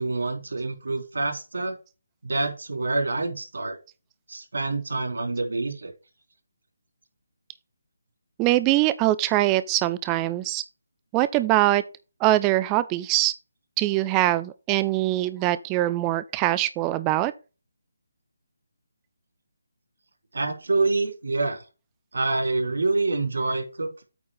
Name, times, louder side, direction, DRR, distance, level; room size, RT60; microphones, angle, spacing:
voice 1, 0.0-1.7 2.2-3.8 4.3-5.9 20.3-21.6 22.1-24.0, right 3 dB, 75° right, 3.5 m, -26 dB
voice 2, 8.4-10.6 11.1-11.8 12.2-13.3 13.8-17.3, right 16 dB, 10° right, 0.3 m, -23 dB
8.6 x 4.0 x 5.8 m
hypercardioid pair, 180°, 0 cm